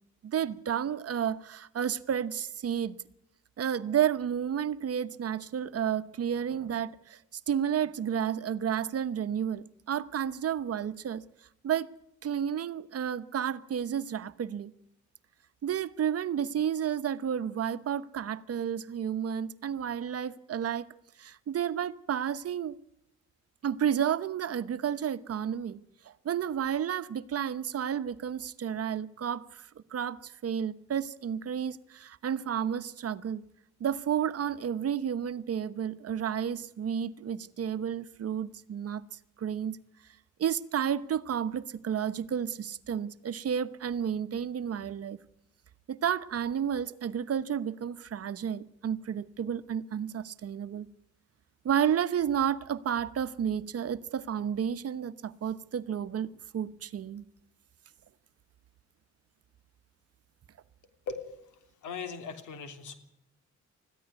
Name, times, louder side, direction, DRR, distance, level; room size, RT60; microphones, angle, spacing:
voice 1, 0.2-3.0 3.6-7.2 7.5-11.2 11.6-11.9 12.2-14.7 15.6-20.9 21.2-22.8 23.6-25.8 26.0-33.4 33.8-39.0 39.4-39.8 40.4-45.2 45.9-50.9 51.6-56.3 56.5-57.2, right 8 dB, 50° right, 1.1 m, -31 dB
voice 2, 61.8-62.9, left 5 dB, 80° left, 3.3 m, -38 dB
21.0 x 14.5 x 9.5 m
cardioid pair, 90°, 30 cm